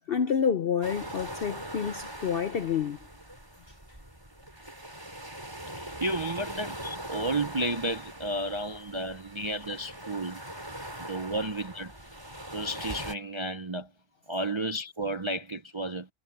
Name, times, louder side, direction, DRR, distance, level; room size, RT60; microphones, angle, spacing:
voice 1, 0.0-3.0, left 7 dB, 55° left, 0.6 m, -28 dB
sound 1, 0.8-13.2, right 1 dB, 15° right, 4.2 m, -41 dB
voice 2, 5.7-10.4 11.0-11.9 12.5-13.9 14.3-16.1, right 1 dB, 30° right, 0.5 m, -32 dB
omnidirectional pair, 1.6 m